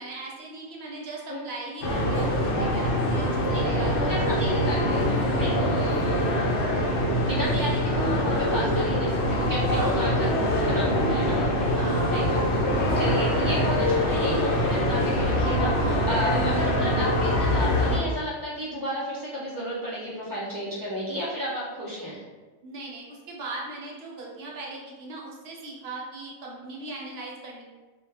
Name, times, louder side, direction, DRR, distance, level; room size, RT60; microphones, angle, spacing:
voice 1, 0.0-4.2 6.4-6.7 9.7-10.2 11.7-12.2 22.6-27.6, right 2 dB, 70° right, -2 dB, 0.8 m, -39 dB
sound 1, 1.8-18.0, equal, 80° left, 0.9 m, -24 dB
voice 2, 3.4-5.8 7.3-22.2, equal, 30° right, -7 dB, 0.4 m, -32 dB
2.2 x 2.0 x 3.2 m, 1.3 s
omnidirectional pair, 1.2 m